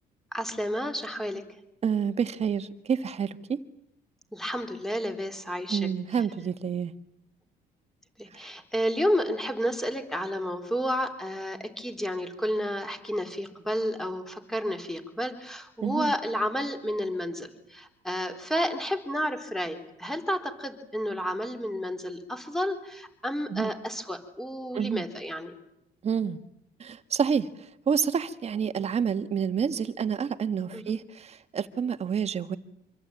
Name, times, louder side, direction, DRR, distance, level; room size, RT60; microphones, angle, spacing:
voice 1, 0.3-1.4 4.3-5.9 8.2-25.5 30.7-30.9, equal, ahead, 6 dB, 3.9 m, -31 dB
voice 2, 1.8-3.6 5.7-6.9 8.3-8.4 15.8-16.1 23.5-23.7 24.7-25.0 26.0-26.4 26.8-27.5 27.9-32.6, right 7 dB, 40° right, 10 dB, 1.6 m, -28 dB
26.0 x 23.5 x 9.0 m, 0.80 s
cardioid pair, 110°, 17 cm